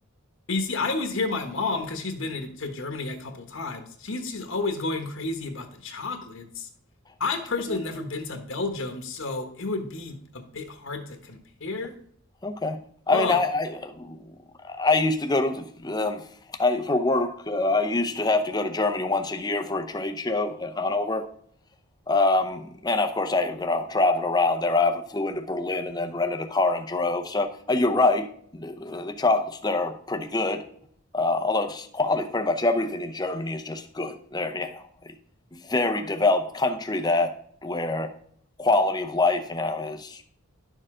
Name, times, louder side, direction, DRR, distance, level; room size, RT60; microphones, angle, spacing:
voice 1, 0.5-6.7 7.2-11.9 13.1-13.4, left 3 dB, 60° left, 5 dB, 1.2 m, -31 dB
voice 2, 12.4-12.8 13.1-14.2 14.6-16.3 16.6-21.3 22.1-30.7 31.1-34.8 35.5-37.3 37.6-38.1 38.6-40.2, left 2 dB, 20° left, 7 dB, 0.6 m, -25 dB
11.5 x 6.6 x 3.7 m, 0.62 s
head